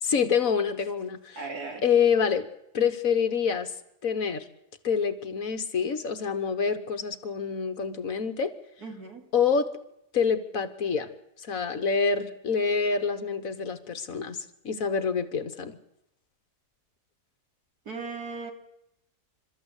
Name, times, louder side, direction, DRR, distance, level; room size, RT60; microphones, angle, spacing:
voice 1, 0.0-1.4 1.8-2.5 2.7-3.7 4.0-4.4 4.8-8.5 9.3-9.7 10.1-11.1 11.4-14.4 14.6-15.8, left 6 dB, 60° left, 9 dB, 1.8 m, -26 dB
voice 2, 1.4-1.8 8.8-9.2 17.9-18.5, right 4 dB, 75° right, 3 dB, 3.4 m, -37 dB
29.0 x 13.5 x 8.2 m, 0.80 s
omnidirectional pair, 1.6 m